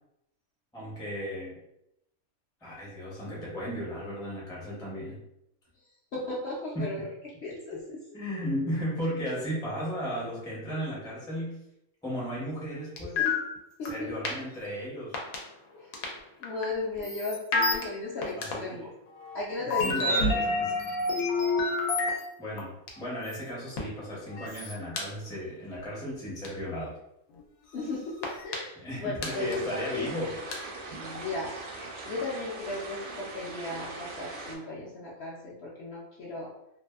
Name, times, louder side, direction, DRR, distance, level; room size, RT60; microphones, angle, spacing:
voice 1, 0.7-1.6 2.6-5.2 6.7-6.9 8.1-11.6 12.0-13.3 13.8-15.2 18.3-18.8 19.6-20.7 22.4-26.9 28.8-30.4, equal, 5° left, -6 dB, 0.4 m, -35 dB
voice 2, 6.1-7.1 7.4-8.0 13.2-13.5 13.8-14.1 15.7-18.9 19.3-20.2 27.7-28.1 28.4-30.1 31.0-31.5 32.1-36.5, left 2 dB, 65° left, -5 dB, 0.7 m, -36 dB
sound 1, 13.0-13.6 13.9-14.0 14.2-14.3 15.1-15.4 15.9-16.1 16.4-16.6 17.0-17.8 18.2-18.6 19.2-22.2 22.6-22.7 22.9-23.0 23.3-23.4 23.8-23.9 24.3-25.0 26.4-26.5 27.3-27.4 28.2-28.5 29.2-29.3 29.5-29.6 30.5-30.6, left 3 dB, 85° left, 1.1 m, -28 dB
sound 2, 29.2-34.6, right 2 dB, 65° right, 0.7 m, -41 dB
2.6 x 2.4 x 2.3 m, 0.82 s
omnidirectional pair, 1.5 m